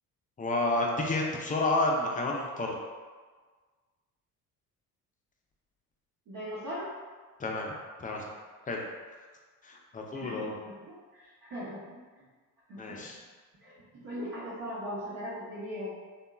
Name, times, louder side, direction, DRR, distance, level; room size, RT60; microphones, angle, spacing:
voice 1, 0.4-2.8 7.4-7.7 8.0-8.3 8.7-8.8 9.6-10.5 12.8-13.2, left 2 dB, 20° left, -1 dB, 0.4 m, -30 dB
voice 2, 6.3-6.9 10.1-12.3 12.7-13.0 13.6-15.9, equal, 45° right, -10 dB, 0.9 m, -40 dB
2.8 x 2.3 x 2.3 m, 1.5 s
hypercardioid pair, 55°, 46 cm